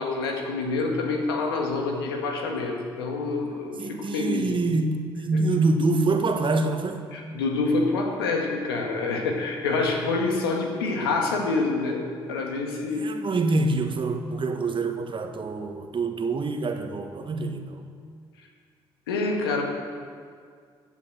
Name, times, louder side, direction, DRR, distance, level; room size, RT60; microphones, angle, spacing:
voice 1, 0.0-4.6 5.3-5.4 7.1-12.0 12.3-13.1 19.1-19.6, left 3 dB, 90° left, 1 dB, 1.7 m, -27 dB
voice 2, 3.8-7.0 13.0-17.6, right 3 dB, 40° right, 6 dB, 1.5 m, -25 dB
14.0 x 8.2 x 7.7 m, 2.1 s
hypercardioid pair, 50°, 12 cm